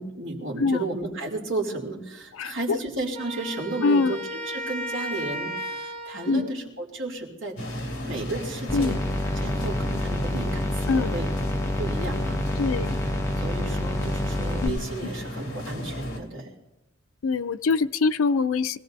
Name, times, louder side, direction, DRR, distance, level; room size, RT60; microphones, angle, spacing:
voice 1, 0.0-4.2 4.5-7.6 8.1-9.0 9.3-11.3 11.8-12.4 13.4-16.5, right 2 dB, 70° right, 0 dB, 2.9 m, -33 dB
voice 2, 2.3-2.8 3.8-4.2 6.3-6.5 8.7-9.0 10.9-11.1 12.6-13.0 14.6-14.8 17.2-18.8, left 4 dB, 85° left, 12 dB, 0.5 m, -24 dB
Wind instrument woodwind instrument, 3.1-6.5, equal, 30° right, 1.8 m, -34 dB
sound 1, 7.6-16.2, equal, 55° left, 3.0 m, -34 dB
sound 2, 8.7-14.7, left 1 dB, 15° left, 0.8 m, -28 dB
24.0 x 16.5 x 2.7 m, 0.94 s
head